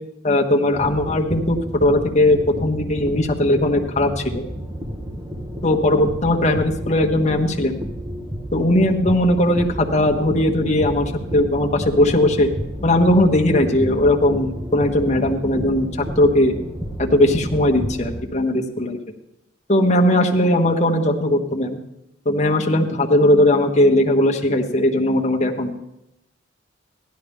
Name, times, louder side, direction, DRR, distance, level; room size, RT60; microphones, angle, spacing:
voice 1, 0.2-4.4 5.6-7.8 8.5-12.5 12.8-15.9 16.2-16.5 17.0-19.0 19.7-21.8 22.2-25.8, left 1 dB, 35° left, 1 dB, 1.0 m, -18 dB
sound 1, 0.7-18.2, equal, 20° right, 1.0 m, -31 dB
15.5 x 11.5 x 3.5 m, 0.85 s
head